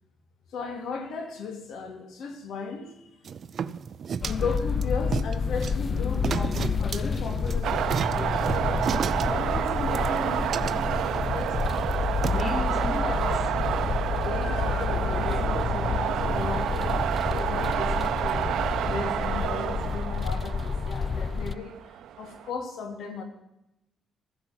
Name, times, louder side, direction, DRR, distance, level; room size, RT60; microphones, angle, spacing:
voice 1, 0.5-3.1 4.2-7.9 8.3-8.8 9.2-11.6 12.5-13.5 14.2-17.0 17.3-18.5 18.8-23.2, left 4 dB, 75° left, 6 dB, 2.7 m, -36 dB
sound 1, 3.2-12.4, right 7 dB, 50° right, 0.6 m, -34 dB
sound 2, 4.2-21.6, left 5 dB, 35° left, 0.4 m, -29 dB
sound 3, 7.6-22.5, right 10 dB, 85° right, 0.8 m, -29 dB
15.0 x 10.0 x 7.4 m, 0.89 s
cardioid pair, 125°, 0 cm